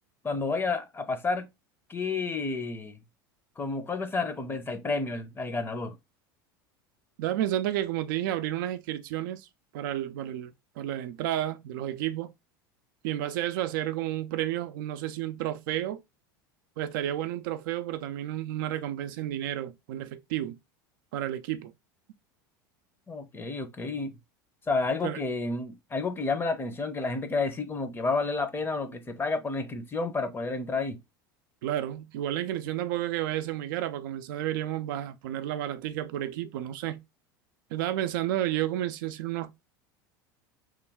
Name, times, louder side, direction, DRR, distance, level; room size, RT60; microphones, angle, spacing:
voice 1, 0.2-1.5 1.9-3.0 3.6-6.0 23.1-24.2 24.7-31.0, left 3 dB, 20° left, 0.6 m, -30 dB
voice 2, 7.2-9.5 9.7-12.3 13.0-16.0 16.8-20.6 21.1-21.7 25.0-25.2 31.6-37.0 37.7-39.6, right 12 dB, 70° right, 0.4 m, -31 dB
3.1 x 2.2 x 3.5 m
hypercardioid pair, 90°, 11 cm